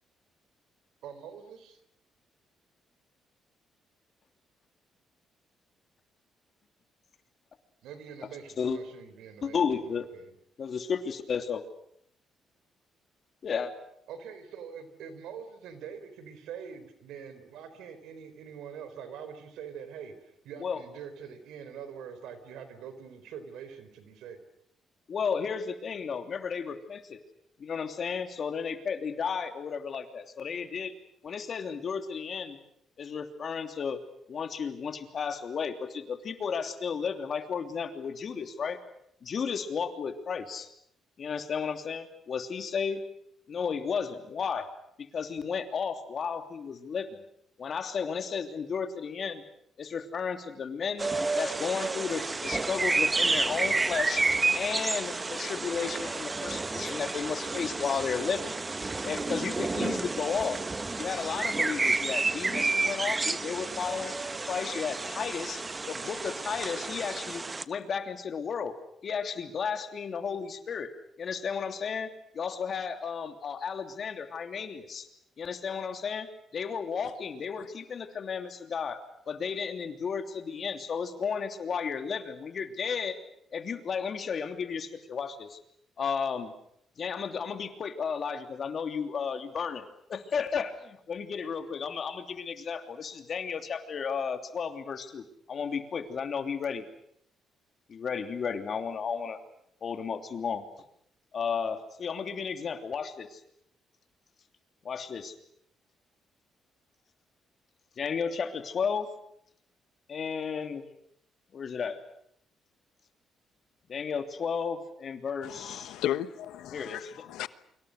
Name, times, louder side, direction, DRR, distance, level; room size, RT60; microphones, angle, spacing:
voice 1, 1.0-1.8 7.8-9.6 9.9-10.3 14.1-24.4, right 7 dB, 85° right, 4.1 m, -44 dB
voice 2, 9.4-10.1 10.6-11.6 13.4-13.7 20.6-20.8 25.1-27.2 27.6-30.9 31.2-32.6 33.0-34.0 34.3-38.8 39.2-40.7 41.2-43.0 43.5-44.7 45.0-47.2 47.6-49.4 49.8-54.3 54.5-58.5 59.0-60.6 61.0-64.1 64.5-68.8 69.0-70.9 71.2-75.1 75.4-76.3 76.5-79.0 79.3-83.2 83.5-85.6 86.0-86.5 87.0-96.8 97.9-99.4 99.8-100.6 101.3-103.4 104.8-105.4 108.0-109.1 110.1-110.8 111.5-112.0 113.9-115.9 116.7-117.1, left 6 dB, 50° left, 3.0 m, -33 dB
sound 1, 51.0-67.6, right 3 dB, 25° right, 1.1 m, -30 dB
voice 3, 115.4-117.5, left 12 dB, 90° left, 1.1 m, -35 dB
29.5 x 25.0 x 6.6 m
cardioid pair, 90°, 0 cm